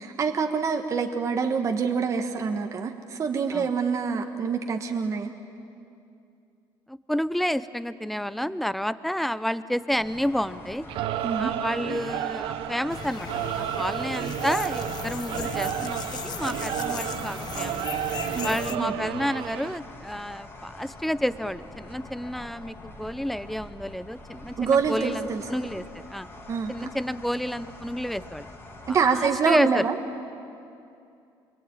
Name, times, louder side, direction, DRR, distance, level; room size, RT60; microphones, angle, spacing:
voice 1, 0.0-5.3 11.2-11.5 18.3-18.9 24.6-25.4 26.5-26.7 28.9-29.9, right 5 dB, 35° right, 4 dB, 1.5 m, -26 dB
voice 2, 6.9-10.9 11.4-13.3 13.6-17.9 18.4-26.3 26.7-28.5 28.9-29.8, equal, ahead, 14 dB, 0.6 m, -30 dB
sound 1, 9.9-29.1, left 2 dB, 25° left, 2.9 m, -45 dB
Singing / Musical instrument, 10.9-19.8, right 12 dB, 80° right, 0.8 m, -32 dB
sound 2, 12.9-18.8, left 7 dB, 50° left, 1.2 m, -37 dB
27.0 x 23.0 x 8.9 m, 2.5 s
cardioid pair, 130°, 9 cm